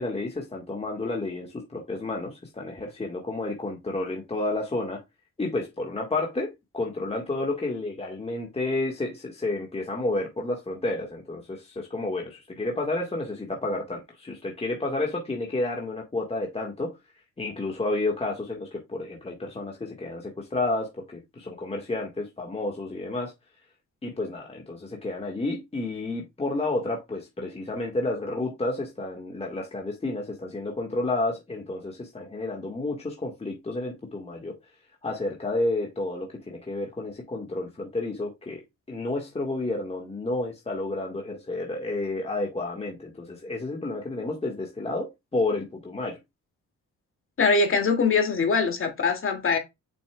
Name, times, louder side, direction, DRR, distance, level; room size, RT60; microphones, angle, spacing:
voice 1, 0.0-5.0 5.4-17.0 17.4-23.3 24.0-34.6 35.0-38.6 38.9-46.2, left 2 dB, 20° left, 1.6 m, -31 dB
voice 2, 47.4-49.6, left 4 dB, 45° left, 2.4 m, -22 dB
7.1 x 6.0 x 2.3 m
cardioid pair, 90°, 30 cm